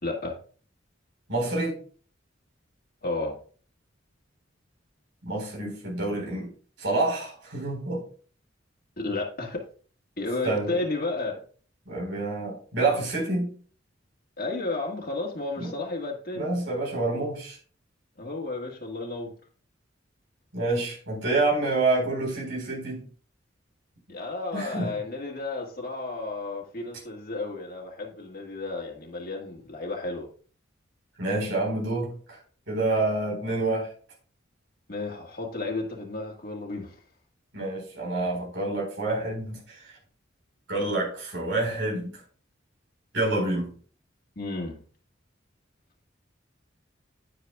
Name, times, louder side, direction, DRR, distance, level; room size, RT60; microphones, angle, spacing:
voice 1, 0.0-0.3 3.0-3.4 9.0-9.6 10.2-11.4 14.4-16.5 18.2-19.3 24.1-30.3 34.9-37.0 44.3-44.8, left 3 dB, 50° left, -1 dB, 1.6 m, -32 dB
voice 2, 1.3-1.8 5.2-6.5 6.8-8.0 10.4-10.7 11.9-13.5 15.6-15.7 16.3-17.6 20.5-23.0 24.5-24.9 31.2-32.4 32.7-33.9 37.5-39.8 40.7-42.1 43.1-43.7, right 2 dB, 75° right, -2 dB, 4.2 m, -27 dB
10.5 x 9.4 x 2.3 m, 0.43 s
head